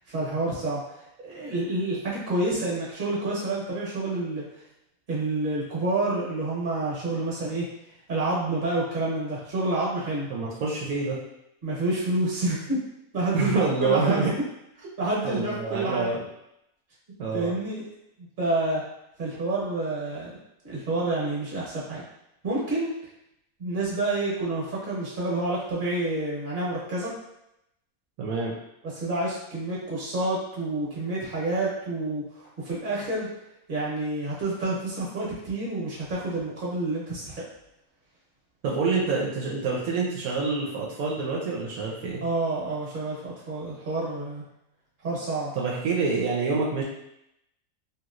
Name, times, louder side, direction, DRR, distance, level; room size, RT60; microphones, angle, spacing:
voice 1, 0.1-0.8 1.2-4.4 5.1-7.7 8.1-10.3 11.6-12.8 13.1-14.3 14.8-16.1 17.3-17.8 18.4-18.8 19.2-20.4 20.6-22.0 22.4-22.9 23.6-27.1 28.8-33.3 33.7-37.4 38.8-38.9 42.2-44.4 45.0-45.5, right 2 dB, 40° right, -6 dB, 1.1 m, -28 dB
voice 2, 10.3-11.2 13.3-14.3 15.2-16.2 17.2-17.5 28.2-28.5 38.6-42.2 45.5-46.8, right 4 dB, 75° right, -4 dB, 1.0 m, -27 dB
3.0 x 2.9 x 2.4 m, 0.82 s
omnidirectional pair, 1.5 m